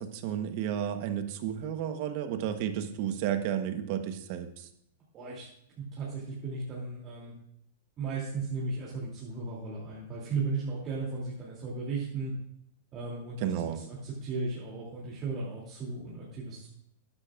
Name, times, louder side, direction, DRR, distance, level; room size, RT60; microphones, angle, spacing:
voice 1, 0.0-4.7 13.4-13.8, right 9 dB, 50° right, 8 dB, 1.1 m, -32 dB
voice 2, 5.1-5.5 5.8-7.3 8.0-12.3 12.9-16.7, right 3 dB, 30° right, -6 dB, 2.8 m, -36 dB
12.5 x 9.8 x 2.5 m, 0.74 s
hypercardioid pair, 135°, 0 cm